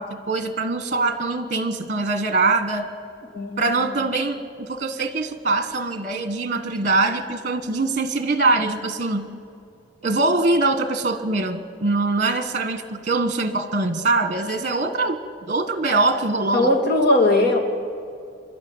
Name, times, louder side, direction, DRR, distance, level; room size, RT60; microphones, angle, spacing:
voice 1, 0.0-2.9 3.6-9.3 10.0-15.2 15.5-16.7, right 3 dB, 40° right, 9 dB, 1.4 m, -23 dB
voice 2, 3.3-3.9 16.5-17.6, left 1 dB, 55° left, 1 dB, 2.8 m, -19 dB
26.5 x 12.5 x 9.0 m, 2.4 s
head